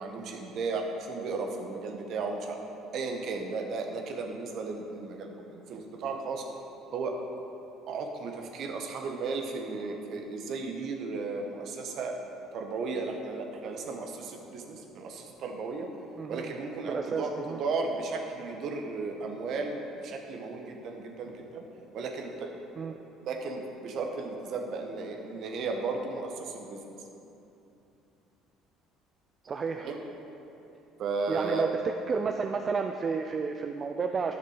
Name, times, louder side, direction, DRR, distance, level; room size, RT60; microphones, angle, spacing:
voice 1, 0.0-2.6 2.9-6.4 6.9-7.1 7.9-12.2 12.5-15.9 16.3-21.6 21.9-22.5 23.3-26.8 29.8-30.0 31.0-31.7, right 4 dB, 55° right, 3 dB, 1.2 m, -35 dB
voice 2, 16.2-16.5 16.8-17.6 22.8-23.0 29.4-29.9 31.3-31.8 32.1-34.3, right 5 dB, 40° right, 5 dB, 0.5 m, -31 dB
10.5 x 6.6 x 5.0 m, 2.9 s
hypercardioid pair, 60°, 0 cm